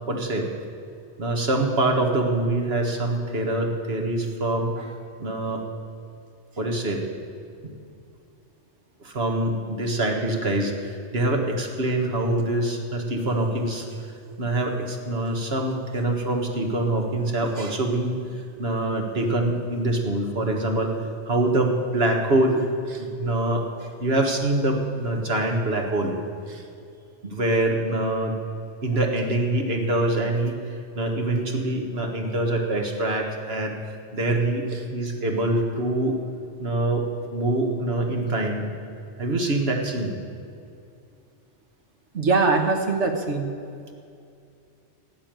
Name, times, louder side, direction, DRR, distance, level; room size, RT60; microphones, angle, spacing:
voice 1, 0.1-0.5 1.2-4.9 5.2-5.6 6.6-7.0 7.6-7.7 9.0-14.1 14.4-20.9 21.3-22.6 23.0-23.6 24.0-26.1 27.2-28.4 28.8-30.5 31.0-33.7 34.1-34.6 34.9-36.2 36.6-37.1 37.3-38.7 39.2-40.1, right 2 dB, 60° right, 2 dB, 1.8 m, -24 dB
voice 2, 42.1-43.5, right 3 dB, 75° right, 4 dB, 1.6 m, -22 dB
13.0 x 8.8 x 9.0 m, 2.5 s
omnidirectional pair, 1.2 m